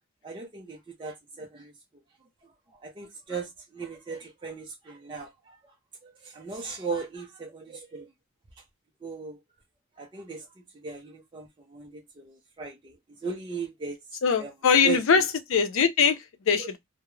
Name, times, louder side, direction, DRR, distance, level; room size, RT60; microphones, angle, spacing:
voice 1, 0.2-1.7 2.8-3.5 3.7-5.5 6.0-8.1 9.0-9.4 10.0-10.4 10.8-11.5 11.7-12.9 13.2-14.0 14.4-14.5 14.8-15.0, right 5 dB, 25° right, 0.4 m, -37 dB
voice 2, 14.2-16.8, left 6 dB, 70° left, 0.5 m, -22 dB
2.3 x 2.0 x 3.0 m
head